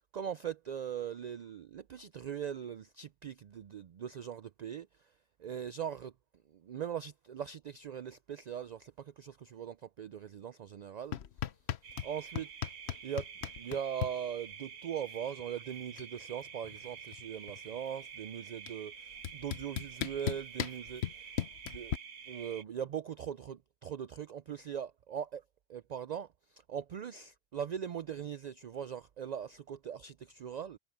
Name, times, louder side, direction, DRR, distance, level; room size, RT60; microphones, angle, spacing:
voice 1, 0.1-5.1 5.4-6.1 6.5-11.2 12.0-12.5 13.0-13.3 13.6-21.3 21.7-21.9 22.3-25.4 25.7-30.8, right 8 dB, 60° right, 0.4 m, -40 dB
sound 1, 11.1-12.1 12.4-14.1 15.4-15.5 15.7-16.1 16.4-17.8 18.7-18.8 19.2-22.0, left 10 dB, 70° left, 1.0 m, -36 dB
sound 2, 11.8-22.6, right 7 dB, 75° right, 1.3 m, -49 dB
omnidirectional pair, 1.1 m